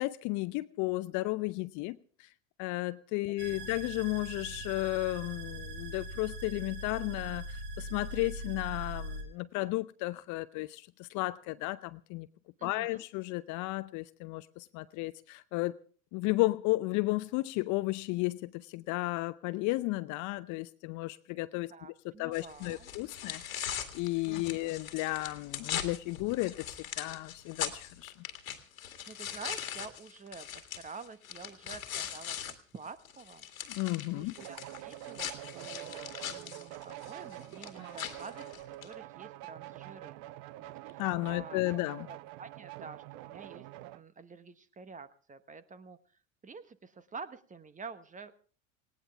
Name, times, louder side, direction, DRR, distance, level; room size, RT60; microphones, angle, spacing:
voice 1, 0.0-2.3 2.6-12.3 12.6-15.8 16.1-21.7 22.2-28.1 33.7-34.3 41.0-42.1, left 20 dB, 45° left, 0.7 m, -33 dB
sound 1, 3.4-9.2, right 1 dB, 60° right, 3.1 m, -41 dB
voice 2, 12.6-13.1 21.7-22.9 24.2-24.8 29.1-33.5 33.7-38.4 38.8-40.2 40.9-41.0 41.3-41.6 42.1-46.0 46.4-48.3, right 5 dB, 20° right, 1.2 m, -48 dB
sound 2, 22.3-32.5 32.9-38.9, left 9 dB, 80° left, 2.0 m, -41 dB
sound 3, 34.4-44.0, right 16 dB, 45° right, 0.7 m, -46 dB
19.0 x 18.0 x 3.4 m
hypercardioid pair, 80°, 41 cm